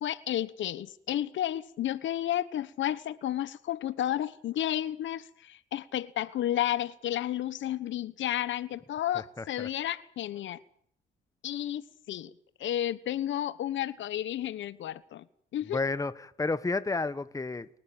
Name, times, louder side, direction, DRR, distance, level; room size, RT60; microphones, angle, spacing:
voice 1, 0.0-10.6 11.4-12.3 12.6-15.2 15.5-15.8, left 12 dB, 70° left, 1.1 m, -32 dB
voice 2, 9.1-9.7 15.6-17.7, left 3 dB, 15° left, 1.3 m, -32 dB
30.0 x 12.5 x 9.0 m
cardioid pair, 90°, 20 cm